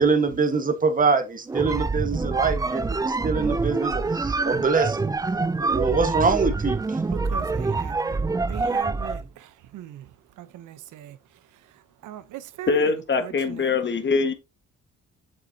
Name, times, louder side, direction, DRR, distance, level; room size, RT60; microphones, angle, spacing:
voice 1, 0.0-5.1 5.6-7.0, right 4 dB, 25° right, 1.5 m, -24 dB
sound 1, 1.5-9.3, right 3 dB, 10° right, 0.4 m, -26 dB
voice 2, 7.1-8.2 8.5-9.2 9.7-10.0 10.4-11.1 12.0-12.7, right 13 dB, 80° right, 0.9 m, -39 dB
voice 3, 12.7-14.3, left 4 dB, 40° left, 1.7 m, -23 dB
7.8 x 7.3 x 2.8 m
cardioid pair, 90°, 30 cm